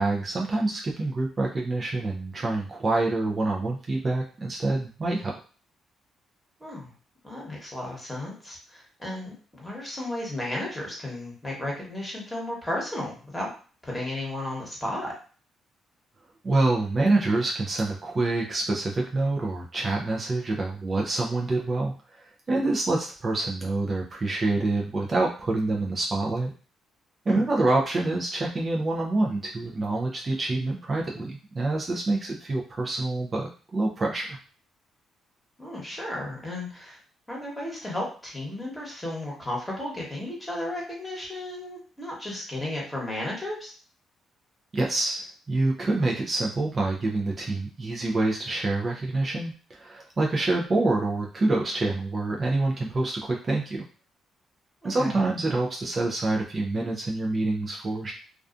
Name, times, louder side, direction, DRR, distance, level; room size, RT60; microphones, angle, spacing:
voice 1, 0.0-5.3 16.4-26.5 27.3-34.4 44.7-53.8 54.8-58.1, right 2 dB, 35° right, -1 dB, 0.4 m, -26 dB
voice 2, 6.6-6.9 7.2-13.5 13.8-15.1 27.3-27.4 35.6-37.0 37.3-43.7 54.8-55.3, left 1 dB, 10° left, -3 dB, 1.1 m, -34 dB
2.4 x 2.3 x 2.4 m, 0.39 s
cardioid pair, 90°, 0 cm